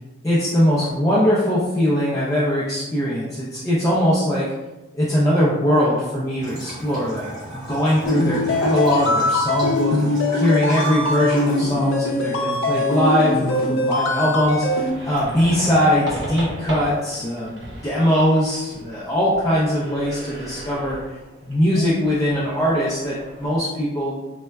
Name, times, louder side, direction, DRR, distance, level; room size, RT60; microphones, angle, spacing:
voice 1, 0.2-4.5 4.9-21.0 21.4-24.2, equal, 15° left, -7 dB, 0.4 m, -21 dB
Bathtub (filling or washing) / Trickle dribble, 6.4-17.4, equal, 25° right, 1.2 m, -37 dB
sound 1, 8.0-14.9, left 2 dB, 80° left, 0.5 m, -22 dB
sound 2, 14.4-23.7, right 1 dB, 65° right, 0.7 m, -37 dB
4.2 x 2.0 x 2.2 m, 1.1 s
head